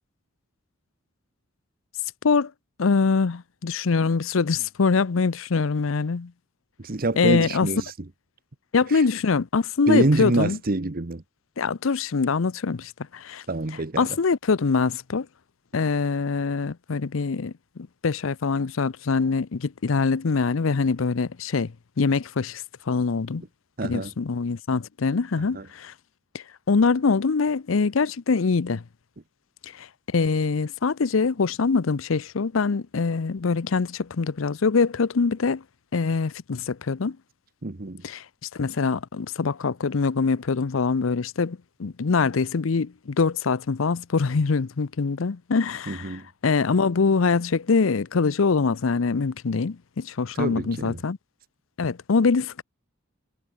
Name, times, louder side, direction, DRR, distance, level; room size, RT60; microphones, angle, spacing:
voice 1, 2.8-6.3 7.2-7.7 8.7-10.6 11.6-13.4 14.0-15.3 15.7-21.7 22.0-23.4 23.8-25.9 26.3-28.8 29.6-35.6 35.9-37.2 38.0-38.2 38.5-46.1 46.4-51.2 51.8-52.6, left 4 dB, 85° left, 0.6 m, -24 dB
voice 2, 6.8-8.1 8.9-9.0 9.9-11.2 13.5-14.1 23.8-24.1 25.5-25.7 37.6-38.0 45.9-46.3 50.3-51.0, right 2 dB, 45° right, 1.0 m, -26 dB
head